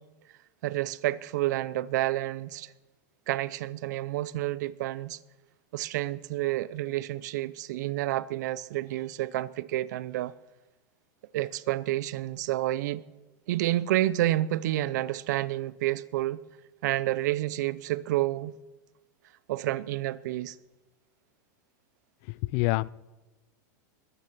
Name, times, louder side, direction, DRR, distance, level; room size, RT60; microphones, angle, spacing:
voice 1, 0.6-2.7 3.3-5.2 5.7-10.3 11.3-13.0 13.5-16.4 16.8-18.5 19.5-20.6, right 15 dB, 70° right, 0.7 m, -29 dB
voice 2, 22.3-22.9, left 22 dB, 45° left, 0.4 m, -27 dB
21.5 x 9.6 x 5.9 m
supercardioid pair, 145°, 10 cm